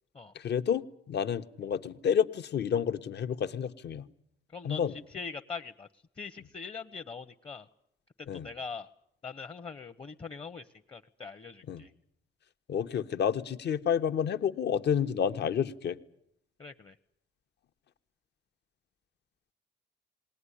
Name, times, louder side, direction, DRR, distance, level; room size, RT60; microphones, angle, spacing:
voice 1, 0.3-4.0 4.6-5.0 8.3-8.5 11.7-11.8 12.7-16.0, left 8 dB, 60° left, 10 dB, 1.0 m, -30 dB
voice 2, 4.5-4.8 5.1-5.9 6.2-7.7 8.2-8.9 9.2-11.9 16.6-16.9, left 5 dB, 30° left, 8 dB, 0.9 m, -42 dB
20.5 x 18.5 x 10.0 m, 0.79 s
cardioid pair, 90°, 20 cm